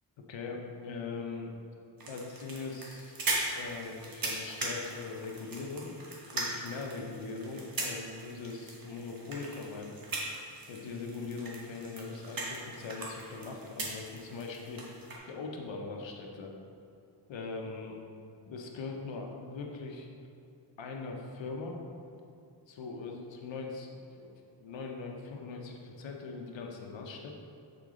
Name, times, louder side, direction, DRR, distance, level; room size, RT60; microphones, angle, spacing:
voice 1, 0.3-1.5 2.1-3.1 3.6-5.9 6.3-10.0 10.7-14.9 15.3-16.5 17.3-18.0 18.5-20.1 20.8-21.8 22.7-24.3 24.6-27.3, left 4 dB, 80° left, 1 dB, 0.8 m, -41 dB
sound 1, 2.0-15.2, right 2 dB, 50° right, 1.1 m, -39 dB
6.8 x 3.8 x 3.7 m, 2.6 s
wide cardioid pair, 135°, 45 cm